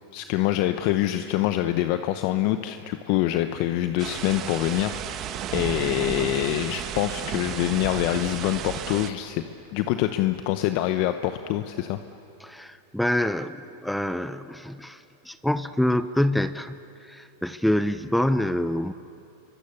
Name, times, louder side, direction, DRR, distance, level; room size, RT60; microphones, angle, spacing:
voice 1, 0.1-5.2 5.5-9.4 9.7-12.0, left 14 dB, 55° left, 9 dB, 0.9 m, -25 dB
sound 1, 4.0-9.1, right 9 dB, 35° right, 1.4 m, -33 dB
voice 2, 12.4-18.9, left 1 dB, ahead, 12 dB, 0.6 m, -26 dB
27.5 x 24.0 x 7.0 m, 2.8 s
supercardioid pair, 125°, 0 cm